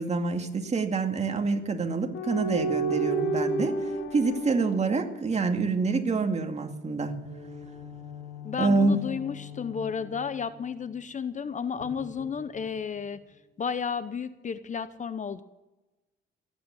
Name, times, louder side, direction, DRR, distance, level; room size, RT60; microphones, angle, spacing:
voice 1, 0.0-3.7 4.1-7.1 8.6-9.0, right 3 dB, 35° right, 5 dB, 2.3 m, -26 dB
sound 1, 2.1-5.8 7.3-11.0 11.8-13.0, right 2 dB, 90° left, 3.5 m, -34 dB
voice 2, 8.4-13.2 13.6-15.4, left 6 dB, 40° left, 14 dB, 0.8 m, -32 dB
20.0 x 9.4 x 7.2 m, 1.0 s
cardioid pair, 90°, 20 cm